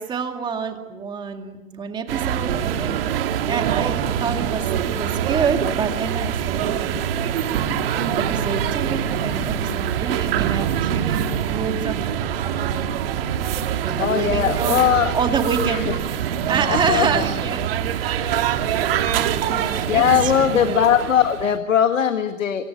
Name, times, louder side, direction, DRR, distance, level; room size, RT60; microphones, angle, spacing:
voice 1, 0.0-6.7 8.2-12.2 12.5-12.9 13.8-14.9 15.1-16.2 16.5-17.6 18.0-18.5 19.4-20.8, right 6 dB, 10° right, 5 dB, 2.3 m, -27 dB
sound 1, 2.1-21.6, right 9 dB, 45° right, 2.2 m, -24 dB
voice 2, 14.0-15.1 15.6-15.9 16.7-17.3 19.1-19.4 19.9-22.6, left 9 dB, 75° left, 8 dB, 1.9 m, -20 dB
25.5 x 23.0 x 8.8 m, 1.0 s
hypercardioid pair, 145°, 39 cm